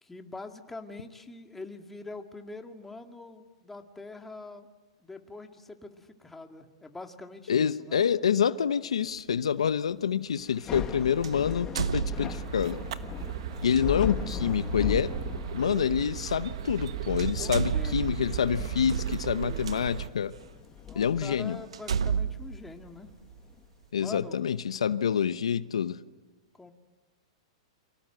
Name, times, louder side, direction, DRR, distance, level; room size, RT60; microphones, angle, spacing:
voice 1, 0.0-4.7 5.0-8.1 17.4-18.1 20.9-23.1 24.0-24.4 26.5-26.7, left 3 dB, 10° left, 5 dB, 2.1 m, -44 dB
voice 2, 7.5-12.8 13.6-15.1 15.5-20.3 20.9-21.6 23.9-26.0, left 7 dB, 85° left, 14 dB, 0.9 m, -27 dB
sound 1, 9.1-9.3 11.2-12.7 13.6-13.8 15.7-15.8 16.7-16.9 17.2-19.8 20.4-20.5 21.0-21.1 21.7-23.5, right 6 dB, 85° right, 1.0 m, -32 dB
Thunder / Rain, 10.5-23.6, left 8 dB, 25° left, 1.7 m, -40 dB
sound 2, 12.2-20.1, right 9 dB, 65° right, 1.3 m, -35 dB
29.5 x 24.5 x 7.9 m, 1.2 s
hypercardioid pair, 125°, 3 cm